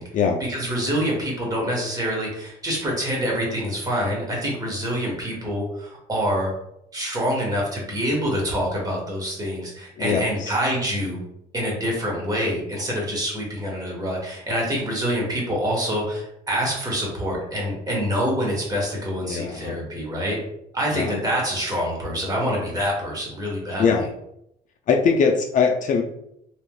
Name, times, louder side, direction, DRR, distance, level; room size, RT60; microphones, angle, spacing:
voice 1, 0.5-6.5 6.9-11.2 11.5-20.4 20.7-24.0, equal, 20° right, -3 dB, 1.2 m, -26 dB
voice 2, 10.0-10.5 19.3-19.8 20.9-21.2 23.8-24.0 24.9-26.0, left 5 dB, 50° left, 2 dB, 0.4 m, -21 dB
3.3 x 2.4 x 2.3 m, 0.78 s
cardioid pair, 110°, 17 cm